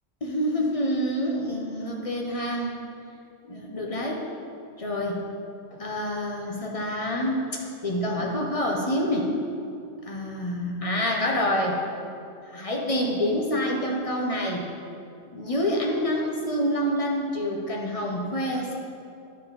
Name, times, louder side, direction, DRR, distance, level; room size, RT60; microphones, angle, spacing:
voice 1, 0.2-2.7 3.5-4.2 4.8-5.2 5.8-7.5 7.8-9.3 10.1-11.8 12.5-14.7 15.3-18.8, equal, 35° left, -1 dB, 0.7 m, -27 dB
9.9 x 4.4 x 3.9 m, 2.5 s
omnidirectional pair, 1.3 m